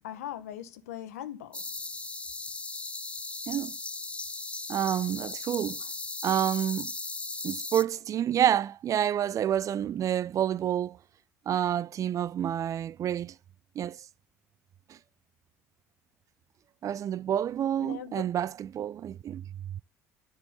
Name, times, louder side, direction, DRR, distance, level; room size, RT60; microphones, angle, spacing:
voice 1, 0.0-1.6 17.8-18.3, left 11 dB, 80° left, 1.2 m, -40 dB
sound 1, 1.5-7.8, left 3 dB, 15° left, 0.5 m, -37 dB
voice 2, 3.5-3.8 4.7-5.8 6.2-6.9 7.4-11.0 11.5-13.3 13.8-14.0 14.9-15.0 16.8-19.8, right 10 dB, 40° right, 0.3 m, -29 dB
10.5 x 3.8 x 4.0 m
hypercardioid pair, 60°, 8 cm